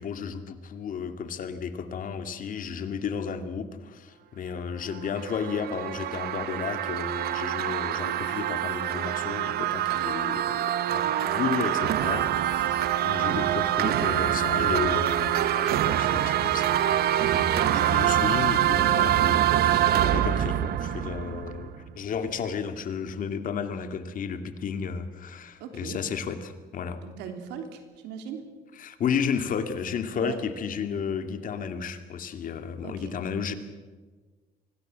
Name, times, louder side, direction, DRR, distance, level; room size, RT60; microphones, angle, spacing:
voice 1, 0.0-17.1 17.3-27.0 28.7-33.5, left 6 dB, 55° left, 8 dB, 2.3 m, -33 dB
sound 1, 4.9-21.9, right 11 dB, 70° right, 1.2 m, -25 dB
voice 2, 17.5-17.9 25.6-26.0 27.0-28.4 30.2-30.4 32.8-33.1, right 7 dB, 90° right, 6 dB, 3.3 m, -39 dB
25.0 x 18.5 x 7.5 m, 1.4 s
cardioid pair, 110°, 17 cm